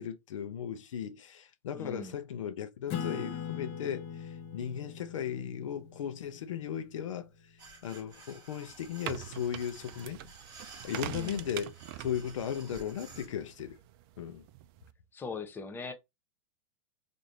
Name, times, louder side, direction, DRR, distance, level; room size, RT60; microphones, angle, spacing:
voice 1, 0.0-7.5 7.8-13.8 14.2-14.4, left 9 dB, 80° left, 0.6 m, -37 dB
voice 2, 1.7-2.1 11.1-11.4 15.1-15.9, left 4 dB, 15° left, 0.6 m, -40 dB
Acoustic guitar / Strum, 2.9-7.9, left 8 dB, 45° left, 0.9 m, -42 dB
sound 1, 7.6-13.3, right 4 dB, 25° right, 1.4 m, -52 dB
sound 2, 8.7-14.9, right 13 dB, 50° right, 0.4 m, -44 dB
3.1 x 2.6 x 4.0 m
hypercardioid pair, 120°, 16 cm